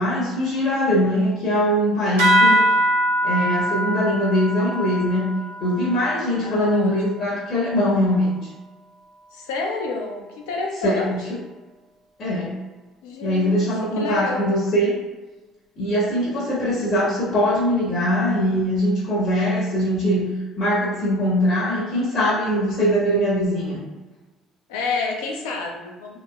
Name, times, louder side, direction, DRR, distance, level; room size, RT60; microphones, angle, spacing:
voice 1, 0.0-2.6 3.2-5.3 5.6-8.5 10.8-11.2 12.2-12.5 13.2-15.0 15.8-20.3 20.6-23.8, equal, 50° left, -6 dB, 0.9 m, -21 dB
sound 1, 2.2-7.1, equal, 80° right, 0.6 m, -22 dB
voice 2, 6.4-7.2 9.3-11.4 13.0-13.7 13.9-14.5 24.7-26.2, left 3 dB, 75° left, 1 dB, 0.5 m, -29 dB
3.0 x 2.6 x 2.3 m, 1.2 s
hypercardioid pair, 55°, 0 cm